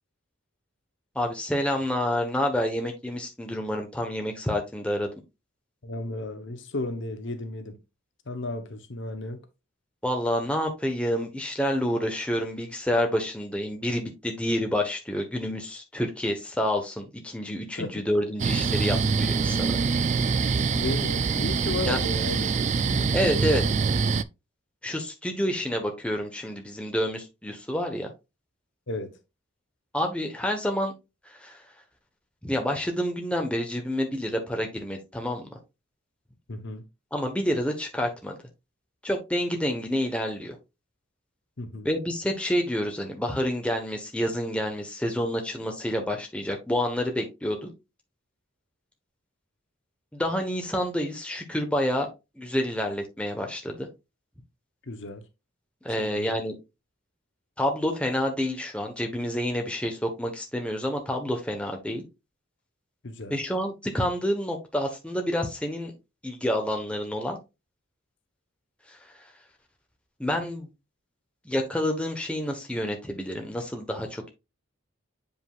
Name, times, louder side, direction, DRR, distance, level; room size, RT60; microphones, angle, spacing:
voice 1, 1.1-5.1 10.0-19.8 21.8-22.0 23.1-23.6 24.8-28.1 29.9-30.9 31.4-31.6 32.4-35.6 37.1-38.4 39.0-40.6 41.8-47.7 50.1-52.1 52.4-53.9 55.8-56.6 57.6-62.0 63.3-65.9 66.2-67.4 68.9-69.0 70.2-70.7 71.4-74.3, equal, 5° left, 1.1 m, -28 dB
voice 2, 5.8-7.8 8.3-9.4 17.8-17.9 20.7-23.1 28.9-29.2 36.5-36.8 41.6-41.9 54.9-55.2 56.0-56.4 63.0-63.4, left 2 dB, 60° left, 0.9 m, -34 dB
sound 1, 18.4-24.2, right 5 dB, 35° right, 0.3 m, -25 dB
7.7 x 5.3 x 2.4 m
head